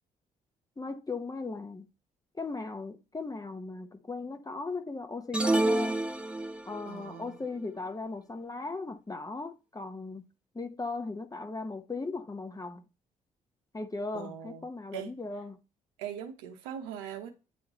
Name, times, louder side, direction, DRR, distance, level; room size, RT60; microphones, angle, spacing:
voice 1, 0.8-1.9 2.4-6.0 6.7-10.2 10.5-12.8 13.7-15.6, left 3 dB, 20° left, 1.1 m, -38 dB
sound 1, 5.3-6.9, right 2 dB, 5° right, 0.9 m, -28 dB
voice 2, 6.8-7.4 14.1-14.7 14.9-15.1 16.0-17.3, right 9 dB, 85° right, 0.9 m, -40 dB
9.2 x 3.6 x 3.0 m
hypercardioid pair, 50°, 16 cm